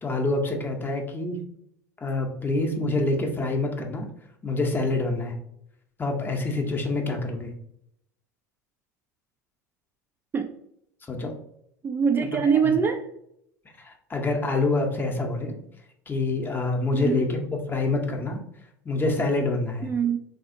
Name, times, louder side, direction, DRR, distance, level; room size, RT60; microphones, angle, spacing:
voice 1, 0.0-1.4 2.0-4.1 4.4-5.4 6.0-7.6 11.1-11.4 12.6-12.7 13.8-15.6 16.1-18.4 18.8-19.9, left 2 dB, 20° left, 3 dB, 0.7 m, -26 dB
voice 2, 11.8-13.0 16.9-17.3 19.8-20.2, right 6 dB, 25° right, 5 dB, 0.3 m, -23 dB
3.3 x 2.7 x 2.5 m, 0.74 s
hypercardioid pair, 80°, 9 cm